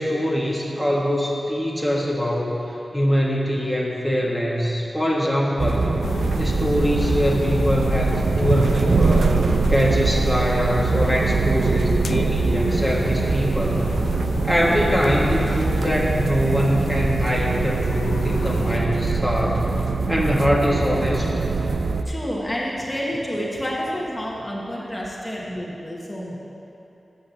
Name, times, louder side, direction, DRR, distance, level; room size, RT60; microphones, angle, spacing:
voice 1, 0.0-2.6 2.9-5.9 6.4-13.9 14.4-19.7 20.1-21.3, equal, 10° right, -4 dB, 1.8 m, -23 dB
sound 1, 5.6-22.0, right 4 dB, 75° right, 0.5 m, -23 dB
sound 2, 6.0-18.8, left 5 dB, 85° left, 0.3 m, -32 dB
voice 2, 22.0-26.4, equal, 15° left, -4 dB, 1.6 m, -29 dB
11.0 x 8.7 x 7.1 m, 2.9 s
wide cardioid pair, 110°, 0 cm